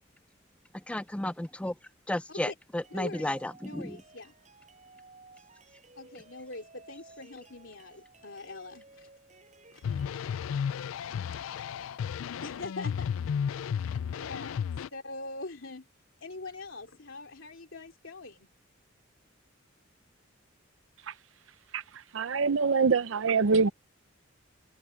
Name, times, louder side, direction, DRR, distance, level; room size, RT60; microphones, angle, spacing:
voice 1, 0.9-1.7 2.1-4.0, left 1 dB, 5° left, 0.4 m, -33 dB
sound 1, 2.8-10.2, right 3 dB, 35° right, 6.1 m, -56 dB
voice 2, 2.9-3.3 3.6-4.3 6.0-9.1 9.7-10.0 12.4-13.1 14.1-15.9 16.2-18.5, left 2 dB, 70° left, 3.1 m, -43 dB
sound 2, 9.8-14.9, left 7 dB, 85° left, 0.4 m, -33 dB
voice 3, 21.7-23.7, right 4 dB, 70° right, 0.6 m, -25 dB
head